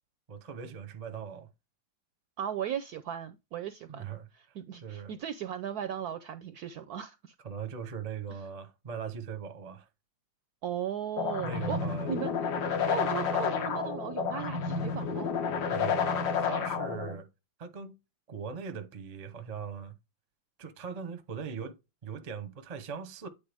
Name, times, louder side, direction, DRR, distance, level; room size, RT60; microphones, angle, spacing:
voice 1, 0.3-1.5 3.9-4.3 4.8-5.1 7.4-9.9 11.4-12.1 15.7-17.3 17.6-18.0 18.3-19.9 20.6-21.8 22.0-23.3, right 6 dB, 45° right, 0.5 m, -40 dB
voice 2, 2.4-4.0 4.3-7.3 10.6-11.8 12.1-15.3, right 9 dB, 75° right, 0.9 m, -37 dB
sound 1, 11.2-17.2, left 6 dB, 60° left, 1.5 m, -30 dB
8.7 x 4.0 x 3.4 m
omnidirectional pair, 2.1 m